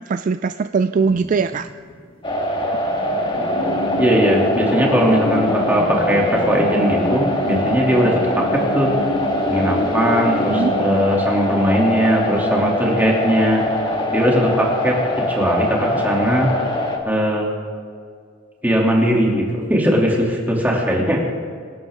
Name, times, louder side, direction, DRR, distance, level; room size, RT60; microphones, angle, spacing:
voice 1, 0.1-1.7 10.5-11.0, right 5 dB, 40° right, 11 dB, 0.3 m, -21 dB
sound 1, 1.0-2.1 2.4-2.5 2.7-11.1, left 1 dB, 45° left, 2.1 m, -27 dB
sound 2, 2.2-17.0, left 1 dB, 25° left, 1.8 m, -23 dB
voice 2, 4.0-8.9 9.4-13.6 14.1-14.9 15.3-16.5 17.0-17.5 18.6-21.2, equal, 10° right, -3 dB, 2.8 m, -19 dB
26.0 x 11.5 x 3.7 m, 2.1 s
head